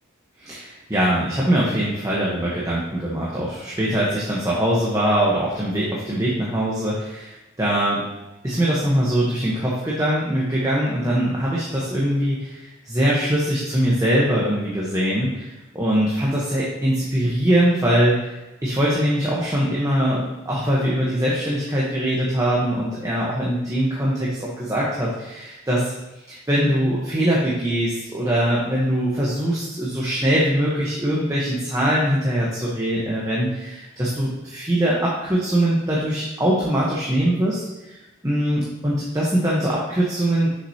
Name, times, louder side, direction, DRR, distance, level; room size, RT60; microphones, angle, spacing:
voice 1, 0.4-8.0 8.4-15.5 15.7-18.2 18.6-25.9 26.3-38.0 38.2-40.5, right 1 dB, 15° right, -6 dB, 1.0 m, -22 dB
6.6 x 5.8 x 2.8 m, 1.0 s
head